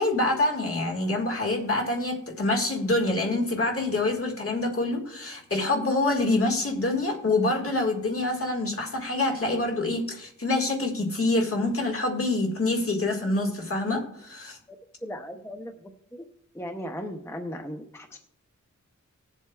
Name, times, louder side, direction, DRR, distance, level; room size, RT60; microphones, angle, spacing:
voice 1, 0.0-14.6, left 2 dB, 45° left, 2 dB, 1.8 m, -26 dB
voice 2, 15.0-16.2 16.5-18.2, equal, 10° left, 4 dB, 0.7 m, -37 dB
19.0 x 7.4 x 2.3 m, 0.76 s
wide cardioid pair, 100°, 31 cm